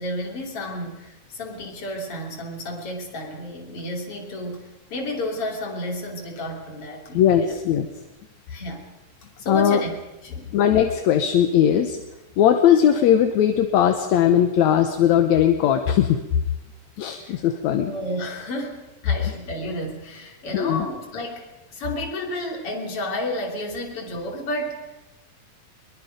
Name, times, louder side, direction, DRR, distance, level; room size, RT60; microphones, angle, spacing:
voice 1, 0.0-7.6 8.5-8.9 9.4-10.0 10.2-10.6 17.2-17.4 17.9-21.4 21.7-25.0, left 1 dB, 45° left, 0 dB, 3.9 m, -31 dB
voice 2, 7.1-7.9 9.5-9.8 10.5-12.0 12.4-16.2 17.0-17.9 20.5-20.9, left 9 dB, 70° left, 6 dB, 2.2 m, -19 dB
23.0 x 22.5 x 5.2 m, 1.0 s
omnidirectional pair, 3.6 m